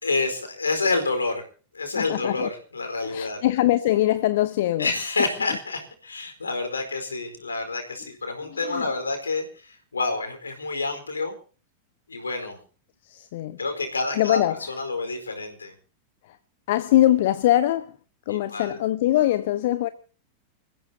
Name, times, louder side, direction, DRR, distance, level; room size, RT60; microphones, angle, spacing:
voice 1, 0.0-1.4 1.7-3.4 4.8-11.3 12.1-12.6 13.6-14.4 14.7-15.7 18.3-18.8, left 3 dB, 75° left, 4.4 m, -28 dB
voice 2, 1.9-2.5 3.0-4.9 8.5-8.9 13.0-13.6 14.1-14.6 16.3-16.4 16.7-17.9 18.3-19.9, left 14 dB, 55° left, 0.8 m, -22 dB
28.5 x 15.5 x 2.8 m
figure-of-eight pair, 90°, 0 cm